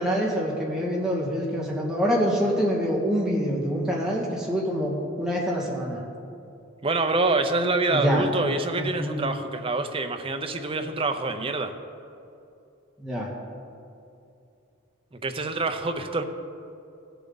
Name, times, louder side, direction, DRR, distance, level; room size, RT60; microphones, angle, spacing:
voice 1, 0.0-6.0 7.9-8.3 8.8-9.3 13.0-13.3, equal, 5° right, -5 dB, 1.9 m, -26 dB
voice 2, 6.8-11.7 15.1-16.2, right 3 dB, 25° right, 6 dB, 0.6 m, -26 dB
16.5 x 7.0 x 4.0 m, 2.6 s
head